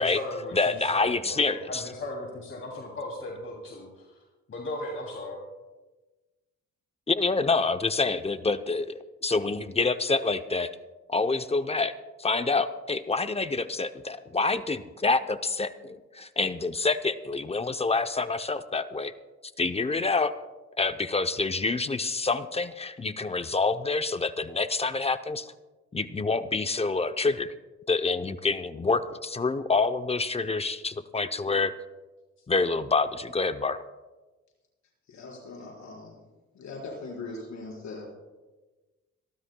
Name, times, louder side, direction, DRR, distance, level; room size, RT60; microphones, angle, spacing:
voice 1, 0.0-4.2 4.5-5.4, left 1 dB, 45° left, -2 dB, 2.9 m, -37 dB
voice 2, 0.5-1.8 7.1-10.7 11.1-19.1 19.6-20.3 20.8-25.5 25.9-27.5 27.9-31.7 32.5-33.8, left 3 dB, 20° left, 11 dB, 0.6 m, -27 dB
voice 3, 35.1-36.2 36.5-38.1, left 3 dB, 65° left, -2 dB, 4.7 m, -40 dB
26.5 x 13.0 x 2.3 m, 1.2 s
cardioid pair, 90°, 30 cm